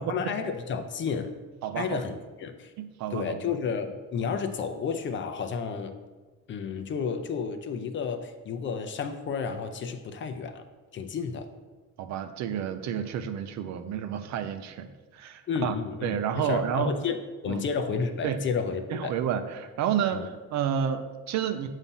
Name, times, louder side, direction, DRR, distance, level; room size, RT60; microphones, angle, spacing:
voice 1, 0.0-1.3 1.8-2.7 3.1-5.9 6.5-10.6 10.9-11.5 15.5-19.2 20.1-20.3, left 6 dB, 40° left, 7 dB, 0.5 m, -31 dB
voice 2, 1.6-2.0 2.8-3.5 12.0-15.8 16.0-16.9 17.5-17.6 18.2-18.4 18.9-21.7, right 8 dB, 65° right, 9 dB, 0.5 m, -30 dB
7.1 x 2.7 x 5.4 m, 1.3 s
cardioid pair, 130°, 30 cm